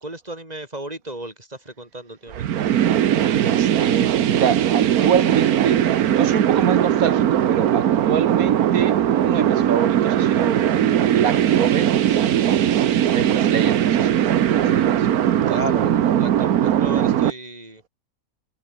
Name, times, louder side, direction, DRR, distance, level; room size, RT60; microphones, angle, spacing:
voice 1, 0.0-2.6 15.5-17.9, right 1 dB, 25° right, 6.3 m, -34 dB
sound 1, 2.3-17.3, right 10 dB, 85° right, 1.4 m, -19 dB
voice 2, 3.4-12.0 12.3-15.1, right 7 dB, 70° right, 1.7 m, -26 dB
omnidirectional pair, 1.5 m